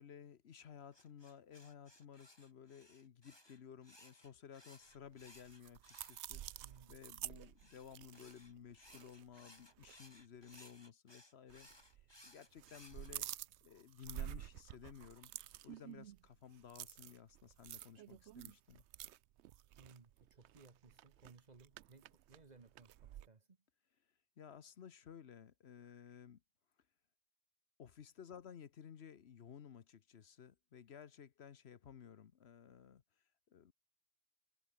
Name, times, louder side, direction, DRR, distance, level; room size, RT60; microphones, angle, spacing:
voice 1, 0.0-6.4 6.9-11.7 12.2-15.3 15.6-18.8 24.4-26.4 27.8-33.0 33.5-33.7, left 8 dB, 65° left, 1.2 m, -56 dB
sound 1, 0.9-6.8 7.6-13.1, left 1 dB, 20° left, 4.2 m, -63 dB
sound 2, 5.0-9.5 9.8-10.0 10.4-10.6 11.5-12.1 12.4-23.3, right 13 dB, 75° right, 0.9 m, -50 dB
voice 2, 6.6-7.0 19.8-23.6, right 4 dB, 35° right, 1.4 m, -62 dB
omnidirectional pair, 1.2 m